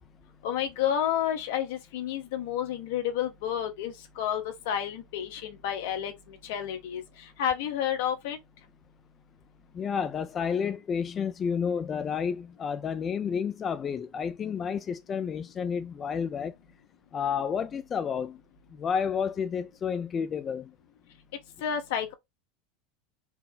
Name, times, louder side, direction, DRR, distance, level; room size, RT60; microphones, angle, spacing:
voice 1, 0.4-7.0 7.4-8.4 21.6-22.1, left 9 dB, 70° left, 0.9 m, -30 dB
voice 2, 9.7-16.5 17.1-18.4 18.7-20.7, left 7 dB, 30° left, 0.3 m, -30 dB
4.3 x 2.1 x 3.7 m
hypercardioid pair, 95°, 0 cm